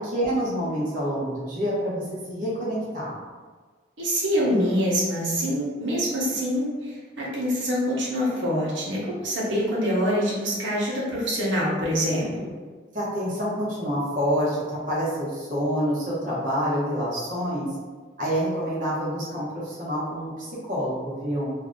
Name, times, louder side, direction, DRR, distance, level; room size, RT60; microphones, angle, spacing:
voice 1, 0.1-3.2 12.9-17.7 18.2-21.5, equal, 45° right, -8 dB, 0.9 m, -27 dB
voice 2, 4.0-12.5, equal, 80° right, -6 dB, 1.0 m, -25 dB
2.7 x 2.5 x 3.6 m, 1.4 s
head